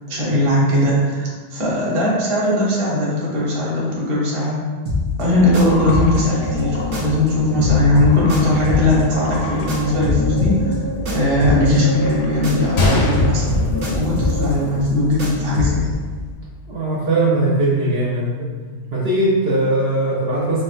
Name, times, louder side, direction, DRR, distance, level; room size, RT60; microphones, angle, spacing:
voice 1, 0.1-4.6 5.2-10.8 11.1-13.6 13.9-16.0, left 1 dB, 30° right, -6 dB, 0.9 m, -19 dB
sound 1, 4.9-7.3 7.6-12.8 13.1-15.9, left 2 dB, 90° right, 1.2 m, -25 dB
sound 2, 5.3-14.8, left 3 dB, 65° left, 0.8 m, -29 dB
Gunshot gunfire, 12.8-14.8 15.1-15.2 15.9-16.1, left 2 dB, 85° left, 1.2 m, -21 dB
voice 2, 16.7-18.5 18.9-20.6, right 2 dB, 60° right, -6 dB, 1.1 m, -19 dB
4.8 x 3.2 x 2.5 m, 1.4 s
omnidirectional pair, 1.2 m